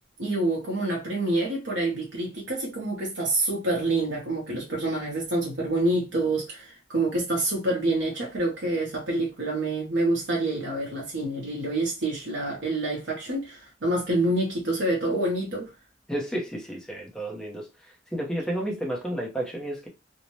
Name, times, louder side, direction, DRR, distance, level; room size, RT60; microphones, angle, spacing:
voice 1, 0.2-15.7, right 2 dB, 70° right, 0.8 m, -27 dB
voice 2, 16.1-17.7 18.1-19.9, right 1 dB, 5° left, 0.6 m, -31 dB
2.6 x 2.1 x 3.0 m
head